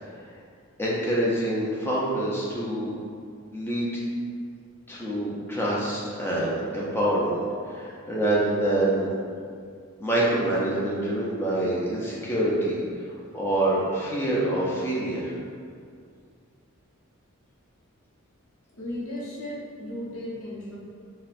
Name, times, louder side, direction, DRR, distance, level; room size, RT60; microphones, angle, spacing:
voice 1, 0.8-2.9 3.5-4.0 4.9-7.4 7.7-9.1 10.0-12.8 13.1-15.3, right 1 dB, 10° left, -6 dB, 0.4 m, -26 dB
voice 2, 18.7-20.8, left 1 dB, 75° left, -6 dB, 0.8 m, -35 dB
4.1 x 2.1 x 2.5 m, 2.2 s
head